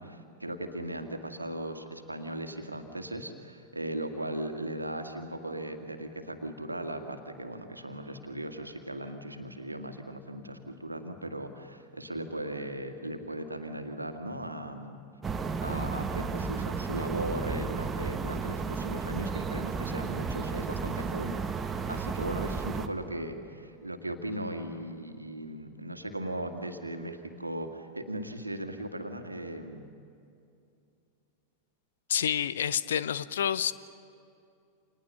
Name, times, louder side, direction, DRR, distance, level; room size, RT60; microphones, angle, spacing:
voice 1, 0.0-15.0 15.6-29.9, right 1 dB, 85° right, 5 dB, 2.1 m, -38 dB
sound 1, 15.2-22.9, right 4 dB, 20° right, 1.4 m, -33 dB
voice 2, 32.1-33.7, left 9 dB, 65° left, 17 dB, 0.8 m, -28 dB
30.0 x 28.0 x 5.7 m, 2.6 s
figure-of-eight pair, 90°, 0 cm